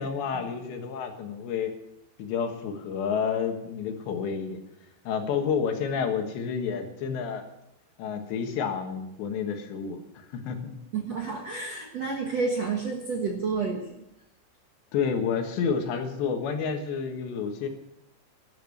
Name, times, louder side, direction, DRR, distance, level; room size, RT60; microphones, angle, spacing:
voice 1, 0.0-1.8 2.2-4.6 5.1-7.4 8.0-10.8 14.9-17.7, left 6 dB, 75° left, 5 dB, 3.7 m, -30 dB
voice 2, 10.9-13.9, right 4 dB, 60° right, 0 dB, 1.8 m, -30 dB
13.0 x 12.5 x 6.5 m, 0.84 s
omnidirectional pair, 5.2 m